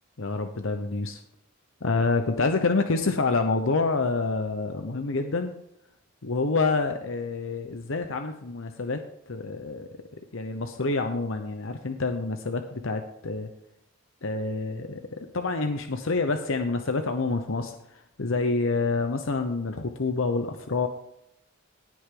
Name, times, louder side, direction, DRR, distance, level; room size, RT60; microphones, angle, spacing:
voice 1, 0.2-1.2 1.8-5.6 6.2-9.9 10.3-13.5 14.2-20.9, left 3 dB, 65° left, 6 dB, 0.9 m, -27 dB
18.0 x 6.3 x 3.8 m, 0.75 s
head